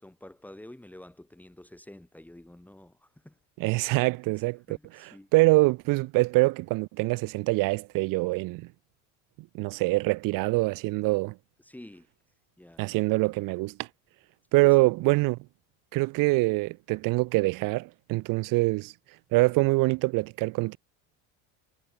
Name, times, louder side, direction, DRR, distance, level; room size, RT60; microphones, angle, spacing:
voice 1, 0.0-3.3 4.7-5.3 11.6-12.1 12.6-12.8 14.6-14.9, left 1 dB, 5° left, 4.1 m, -48 dB
voice 2, 3.6-8.7 9.5-11.3 12.8-13.9 14.5-15.4 15.9-18.9 19.3-20.8, right 23 dB, 65° right, 1.3 m, -25 dB
cardioid pair, 120°, 35 cm